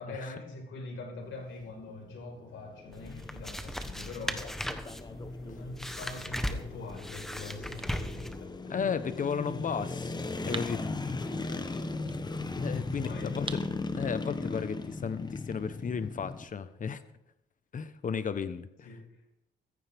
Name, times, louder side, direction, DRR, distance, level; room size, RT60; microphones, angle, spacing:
voice 1, 0.0-4.6 5.1-8.6 11.4-12.0 12.7-13.5 18.8-19.2, left 2 dB, 75° left, 2 dB, 4.8 m, -43 dB
sound 1, 1.2-16.4, left 3 dB, 20° left, 1.1 m, -38 dB
sound 2, 2.9-8.5, equal, ahead, 1.2 m, -38 dB
sound 3, 2.9-16.4, right 4 dB, 25° right, 1.1 m, -51 dB
voice 2, 8.7-10.1 10.5-11.5 12.6-13.6 13.9-17.0 17.7-18.9, left 6 dB, 40° left, 12 dB, 1.1 m, -34 dB
15.5 x 14.5 x 3.6 m, 0.85 s
cardioid pair, 90°, 20 cm